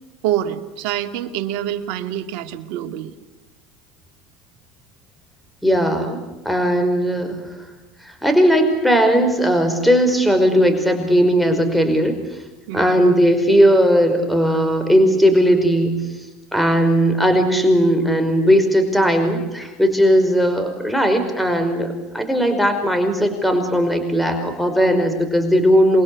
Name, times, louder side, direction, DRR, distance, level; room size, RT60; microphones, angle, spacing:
voice 1, 0.2-3.2 12.7-13.2, right 11 dB, 70° right, 7 dB, 2.4 m, -26 dB
voice 2, 5.6-6.2 6.5-7.4 8.0-12.1 12.7-16.0 16.5-26.0, equal, ahead, 6 dB, 5.4 m, -17 dB
29.0 x 23.5 x 8.6 m, 1.1 s
supercardioid pair, 95°, 0 cm